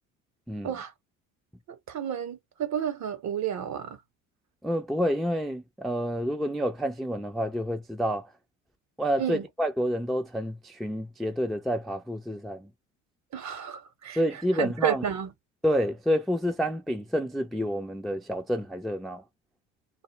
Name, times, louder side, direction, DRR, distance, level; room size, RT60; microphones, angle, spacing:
voice 1, 1.7-4.0 9.2-9.5 13.3-15.3, right 9 dB, 40° right, 0.8 m, -31 dB
voice 2, 4.6-8.3 9.0-12.7 14.1-15.0 15.6-19.2, equal, ahead, 0.4 m, -28 dB
2.1 x 2.0 x 3.2 m
hypercardioid pair, 65°, 42 cm